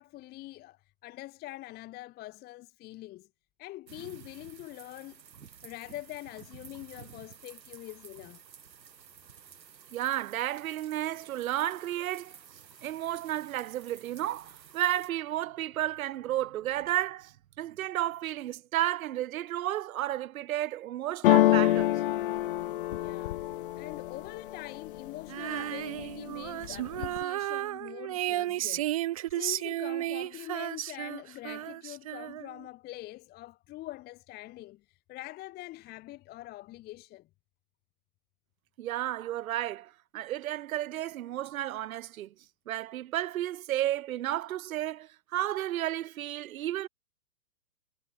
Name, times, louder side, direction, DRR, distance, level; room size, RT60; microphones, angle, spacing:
voice 1, 0.0-3.3 3.6-8.4 22.9-28.9 29.3-37.3, left 17 dB, 20° left, 1.1 m, -44 dB
sound 1, 3.9-15.1, right 7 dB, 80° right, 2.6 m, -52 dB
voice 2, 9.9-12.4 12.8-21.9 38.8-42.3 42.7-46.9, right 13 dB, 55° right, 1.7 m, -32 dB
sound 2, 21.2-25.1 25.6-26.2 26.5-27.2, left 14 dB, 35° left, 0.5 m, -26 dB
Female singing, 25.3-32.6, right 14 dB, 25° right, 0.5 m, -33 dB
hypercardioid pair, 130°, 50 cm